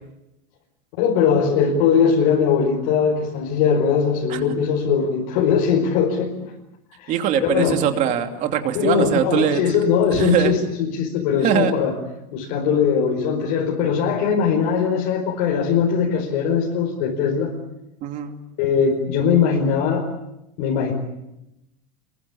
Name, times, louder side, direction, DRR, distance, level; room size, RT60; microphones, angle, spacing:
voice 1, 1.0-6.5 7.0-7.9 8.7-11.9 12.3-17.5 18.6-20.1 20.6-20.9, left 6 dB, 60° left, -2 dB, 4.9 m, -20 dB
voice 2, 7.1-9.8 10.1-10.5 11.4-11.7 18.0-18.3, right 9 dB, 40° right, 5 dB, 2.7 m, -22 dB
26.5 x 22.5 x 8.6 m, 0.89 s
supercardioid pair, 165°, 20 cm